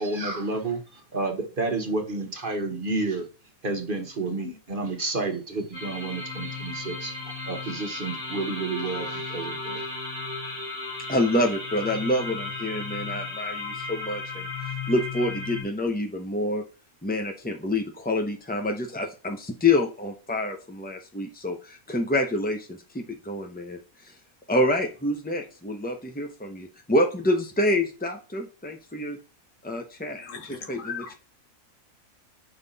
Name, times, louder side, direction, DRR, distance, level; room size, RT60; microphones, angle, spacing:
voice 1, 0.0-3.3 3.6-9.9, right 3 dB, 40° right, 1.3 m, -30 dB
sound 1, 5.7-15.6, left 3 dB, 85° left, 5.7 m, -35 dB
voice 2, 11.1-14.5 14.9-16.6 17.0-24.2 24.5-29.2 29.6-31.1, left 1 dB, 10° left, 0.5 m, -27 dB
voice 3, 30.2-31.1, left 6 dB, 60° left, 1.5 m, -38 dB
7.9 x 5.5 x 4.0 m
omnidirectional pair, 1.5 m